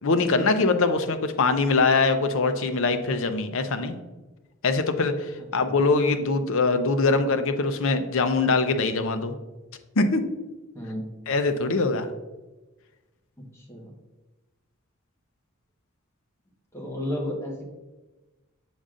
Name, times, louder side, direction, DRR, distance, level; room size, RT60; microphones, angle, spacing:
voice 1, 0.0-4.0 4.6-9.3 10.0-10.2 11.3-12.1, left 3 dB, 65° left, 8 dB, 0.6 m, -23 dB
voice 2, 10.7-11.1 13.5-13.9 16.7-17.7, left 1 dB, 15° left, -2 dB, 1.2 m, -33 dB
7.0 x 6.3 x 2.5 m, 1.1 s
head